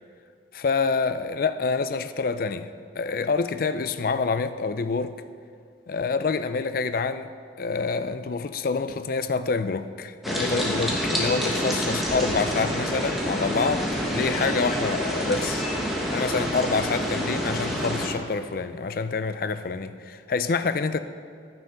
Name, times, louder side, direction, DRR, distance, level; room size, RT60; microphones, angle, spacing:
voice 1, 0.5-2.7 3.0-5.1 5.9-7.3 7.6-15.6 16.1-21.0, left 4 dB, 50° left, 11 dB, 0.4 m, -27 dB
sound 1, 10.2-18.1, equal, ahead, 1.3 m, -27 dB
10.0 x 9.6 x 5.5 m, 2.2 s
head